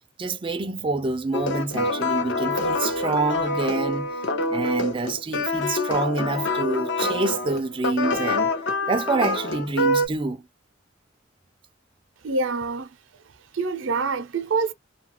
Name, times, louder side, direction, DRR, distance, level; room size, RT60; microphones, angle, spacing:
voice 1, 0.2-4.1 4.5-8.5 8.9-10.4, right 3 dB, 25° right, 0.4 m, -27 dB
sound 1, 1.3-10.1, left 2 dB, 65° left, 0.7 m, -26 dB
voice 2, 12.2-12.9 13.5-14.7, right 4 dB, 80° right, 0.5 m, -25 dB
2.7 x 2.3 x 2.8 m
head